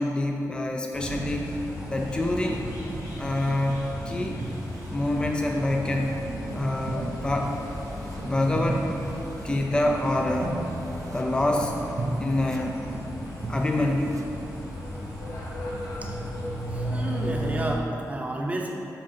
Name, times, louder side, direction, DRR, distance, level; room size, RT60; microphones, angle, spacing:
voice 1, 0.0-1.6 1.9-2.6 3.2-4.4 4.9-7.6 8.2-8.9 9.4-10.6 11.1-11.8 12.2-12.8 13.5-14.2, left 1 dB, 15° left, 1 dB, 0.5 m, -26 dB
sound 1, 0.9-17.7, equal, 65° left, 1.9 m, -35 dB
sound 2, 1.1-14.6, right 2 dB, 55° right, 0.5 m, -37 dB
voice 2, 16.7-18.7, right 1 dB, 20° right, 0 dB, 0.8 m, -31 dB
7.6 x 6.2 x 4.3 m, 2.8 s
wide cardioid pair, 150°, 6 cm